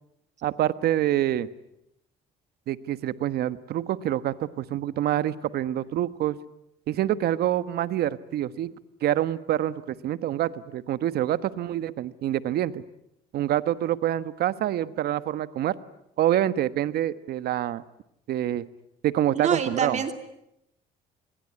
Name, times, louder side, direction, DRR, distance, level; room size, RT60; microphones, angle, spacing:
voice 1, 0.4-1.5 2.7-6.4 6.9-8.7 9.0-12.8 13.3-15.8 16.2-17.8 18.3-18.7 19.0-20.0, right 12 dB, 70° right, 14 dB, 1.3 m, -26 dB
voice 2, 19.3-20.1, right 7 dB, 45° right, 8 dB, 2.8 m, -26 dB
27.5 x 22.0 x 9.7 m, 0.80 s
cardioid pair, 110°, 17 cm